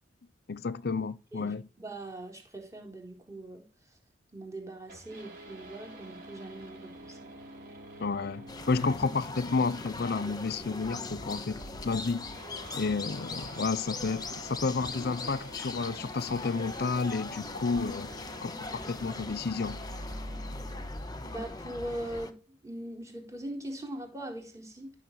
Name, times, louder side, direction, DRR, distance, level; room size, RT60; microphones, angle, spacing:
voice 1, 0.5-1.6 8.0-11.6 11.8-12.3 12.7-18.1 18.4-19.8, left 4 dB, 60° left, 0.6 m, -31 dB
voice 2, 1.3-3.7 4.3-7.3 17.7-17.9 21.2-24.9, right 1 dB, 15° right, 4.2 m, -41 dB
sound 1, 4.9-20.9, right 1 dB, 50° right, 5.4 m, -48 dB
sound 2, 8.5-22.3, left 3 dB, 20° left, 1.4 m, -40 dB
15.0 x 6.7 x 9.3 m
head